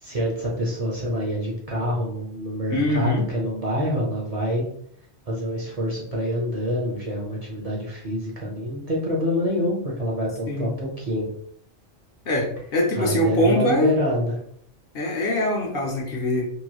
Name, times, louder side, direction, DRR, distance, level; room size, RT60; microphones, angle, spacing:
voice 1, 0.0-4.7 5.3-11.3 13.0-14.4, equal, 40° right, -4 dB, 0.7 m, -26 dB
voice 2, 2.7-3.3 10.5-10.7 12.2-14.0 14.9-16.5, left 1 dB, 60° left, 0 dB, 0.8 m, -23 dB
3.0 x 3.0 x 2.3 m, 0.65 s
omnidirectional pair, 1.2 m